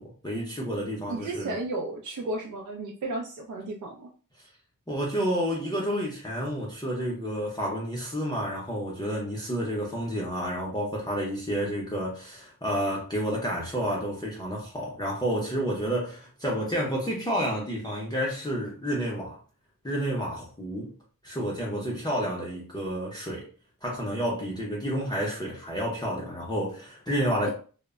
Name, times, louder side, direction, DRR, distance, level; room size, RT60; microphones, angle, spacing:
voice 1, 0.0-1.6 4.9-19.4 19.8-20.9 21.2-23.5 23.8-27.5, equal, 10° left, 0.6 m, -30 dB
voice 2, 1.1-4.1, right 2 dB, 60° right, 0.5 m, -33 dB
2.0 x 2.0 x 3.5 m
wide cardioid pair, 80°, 35 cm